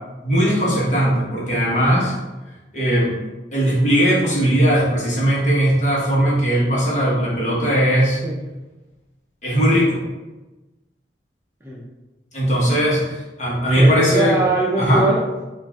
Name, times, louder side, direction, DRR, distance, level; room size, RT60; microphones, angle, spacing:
voice 1, 0.2-2.1 2.7-3.1 3.5-8.2 9.4-10.0 12.3-13.0 13.4-14.4 14.8-15.0, equal, 40° left, -5 dB, 1.4 m, -18 dB
voice 2, 13.8-15.4, right 2 dB, 15° right, -4 dB, 0.6 m, -22 dB
5.6 x 2.6 x 3.6 m, 1.1 s
head